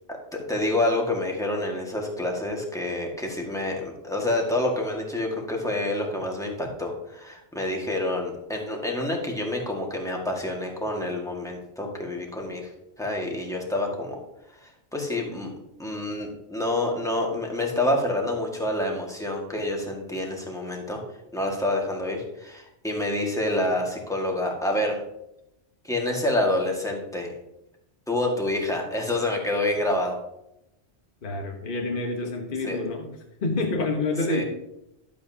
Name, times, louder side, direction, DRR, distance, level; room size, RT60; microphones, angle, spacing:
voice 1, 0.1-12.7 13.0-14.2 14.5-15.5 15.8-21.0 21.3-25.0 25.8-27.3 28.1-30.2 32.6-32.8 34.3-34.4, left 1 dB, 5° left, 0 dB, 1.7 m, -27 dB
voice 2, 31.2-33.1 33.4-34.4, left 2 dB, 50° left, 2 dB, 1.2 m, -27 dB
11.5 x 8.3 x 2.8 m, 0.84 s
omnidirectional pair, 1.2 m